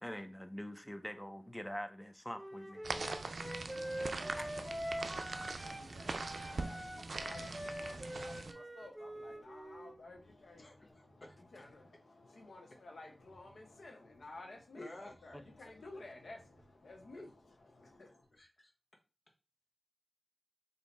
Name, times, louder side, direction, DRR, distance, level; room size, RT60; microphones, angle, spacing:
voice 1, 0.0-2.8 3.3-3.8 4.1-4.8 15.3-15.4, equal, 10° left, 0.6 m, -45 dB
Wind instrument woodwind instrument, 2.3-5.9 6.1-10.0, equal, 10° right, 1.6 m, -44 dB
sound 1, 2.8-8.5, right 3 dB, 80° right, 0.4 m, -42 dB
voice 2, 4.1-5.3 5.6-18.4, left 2 dB, 90° left, 0.9 m, -54 dB
voice 3, 10.5-11.4 14.8-15.1 15.9-16.0 16.8-17.2 18.3-18.7, left 1 dB, 60° left, 1.1 m, -54 dB
3.3 x 2.7 x 4.1 m
cardioid pair, 45°, 0 cm